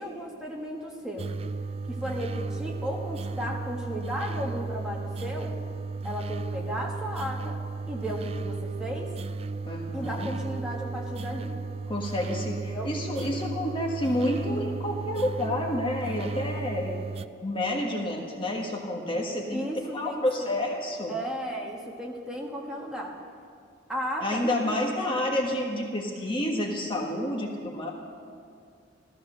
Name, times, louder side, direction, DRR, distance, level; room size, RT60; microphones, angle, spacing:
voice 1, 0.0-1.3 1.9-5.5 6.0-7.6 7.9-9.1 9.9-11.5 12.7-12.9 19.5-20.5 21.1-23.1 23.9-25.2, equal, 5° right, -2 dB, 1.7 m, -35 dB
sound 1, 1.2-17.3, right 3 dB, 30° right, 0.3 m, -34 dB
voice 2, 9.6-10.3 11.9-16.9 17.4-19.6 19.9-21.1 24.2-27.9, left 1 dB, 25° left, 0 dB, 1.4 m, -29 dB
15.0 x 14.0 x 6.5 m, 2.3 s
head